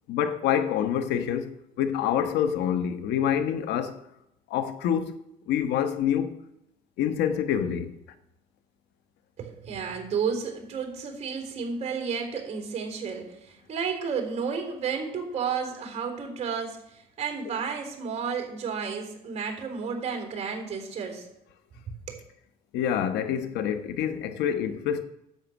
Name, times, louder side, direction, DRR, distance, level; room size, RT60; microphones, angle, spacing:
voice 1, 0.1-4.0 4.5-5.2 5.5-6.3 7.0-7.9 22.7-25.0, left 9 dB, 80° left, 1.1 m, -26 dB
voice 2, 9.4-21.3 22.1-22.2, right 6 dB, 40° right, 3.6 m, -32 dB
10.5 x 8.0 x 6.1 m
cardioid pair, 110°, 17 cm